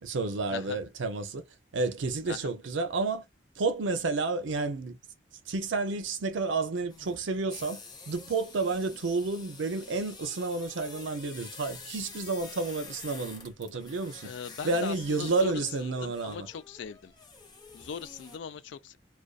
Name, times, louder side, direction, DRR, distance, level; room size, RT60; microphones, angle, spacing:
voice 1, 0.0-1.4 1.7-3.3 3.6-5.0 5.5-14.3 14.6-16.5, right 3 dB, 85° right, 0.5 m, -30 dB
sound 1, 6.9-18.4, left 4 dB, 20° left, 0.7 m, -48 dB
voice 2, 14.2-15.5 15.8-17.1 17.7-19.0, left 7 dB, 75° left, 0.4 m, -40 dB
2.5 x 2.2 x 2.3 m
head